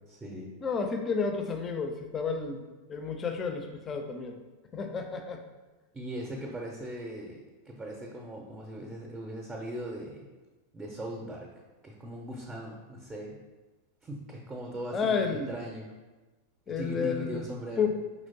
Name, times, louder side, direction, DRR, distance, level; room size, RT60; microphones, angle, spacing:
voice 1, 0.1-0.5 5.9-7.4 7.6-10.3 10.7-11.5 11.8-13.4 14.0-15.9 16.7-17.9, equal, 15° right, 0 dB, 0.6 m, -39 dB
voice 2, 0.6-2.6 2.9-4.3 4.7-5.4 14.9-15.6 16.7-17.4 17.8-18.0, left 5 dB, 25° left, 6 dB, 0.4 m, -31 dB
4.9 x 3.0 x 2.7 m, 1.2 s
figure-of-eight pair, 90°, 0 cm